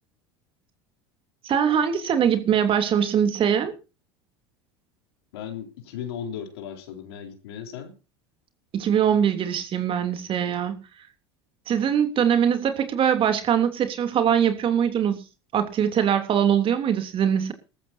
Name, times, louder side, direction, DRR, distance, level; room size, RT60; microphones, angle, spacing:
voice 1, 1.4-3.7 8.7-10.8 11.7-15.2 15.5-17.5, right 8 dB, 40° right, 3.2 m, -22 dB
voice 2, 5.3-8.0, left 8 dB, 75° left, 4.0 m, -36 dB
20.0 x 14.0 x 2.8 m
hypercardioid pair, 80°, 13 cm